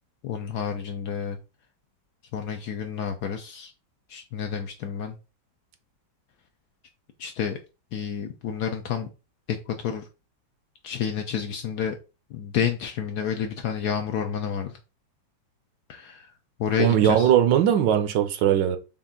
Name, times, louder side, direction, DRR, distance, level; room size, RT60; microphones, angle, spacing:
voice 1, 0.2-1.4 2.3-3.7 4.1-5.2 7.2-7.6 7.9-9.1 9.5-10.1 10.8-12.0 12.3-14.8 15.9-16.3 16.6-17.3, left 7 dB, 75° left, 0.9 m, -30 dB
voice 2, 16.8-18.8, right 10 dB, 75° right, 1.2 m, -20 dB
5.4 x 2.4 x 3.6 m
omnidirectional pair, 2.1 m